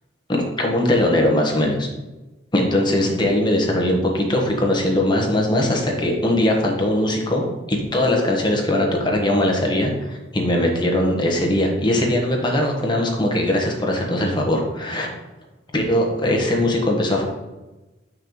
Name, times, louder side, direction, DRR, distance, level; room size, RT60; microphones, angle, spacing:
voice 1, 0.3-1.9 2.5-15.1 15.7-17.2, left 1 dB, 25° left, 0 dB, 1.1 m, -20 dB
6.7 x 6.0 x 3.0 m, 1.1 s
head